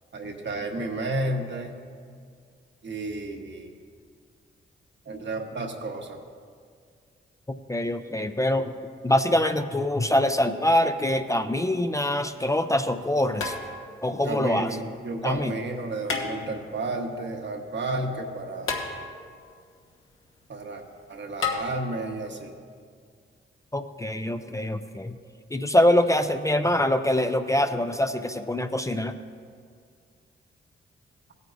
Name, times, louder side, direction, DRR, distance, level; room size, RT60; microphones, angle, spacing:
voice 1, 0.1-1.8 2.8-3.7 5.0-6.2 14.2-18.8 20.5-20.8 21.1-22.5, right 2 dB, 60° right, 2 dB, 1.3 m, -32 dB
voice 2, 7.7-8.7 9.0-13.5 14.0-14.7 15.2-15.5 23.7-25.2 25.5-29.2, left 1 dB, 15° left, 8 dB, 0.5 m, -24 dB
sound 1, 12.1-12.2 13.4-14.1 16.0-16.8 18.7-19.4 21.4-21.6, left 5 dB, 75° left, 1.4 m, -31 dB
16.5 x 9.4 x 2.6 m, 2.1 s
cardioid pair, 55°, 21 cm